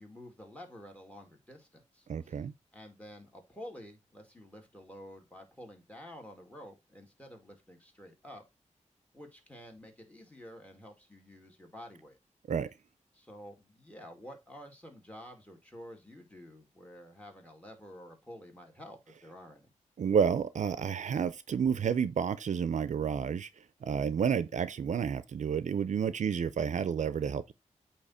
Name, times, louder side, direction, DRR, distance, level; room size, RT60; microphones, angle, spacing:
voice 1, 0.0-2.4 2.7-8.4 9.1-12.2 13.1-19.7, equal, 10° left, 2.1 m, -50 dB
voice 2, 2.1-2.5 12.5-12.7 20.0-23.5 23.8-27.5, right 7 dB, 70° right, 0.5 m, -30 dB
8.4 x 3.0 x 4.2 m
wide cardioid pair, 75°, 13 cm